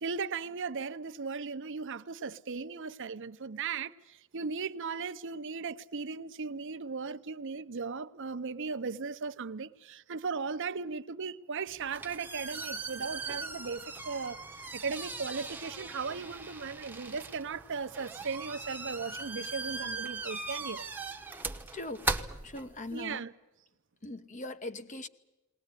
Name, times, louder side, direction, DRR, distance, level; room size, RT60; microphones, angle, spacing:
voice 1, 0.0-20.8 22.9-23.3, right 5 dB, 60° right, 0.8 m, -37 dB
sound 1, 11.7-23.1, right 3 dB, 10° right, 1.0 m, -39 dB
voice 2, 21.7-23.2 24.0-25.1, left 2 dB, 35° left, 1.0 m, -41 dB
21.0 x 19.0 x 9.8 m
head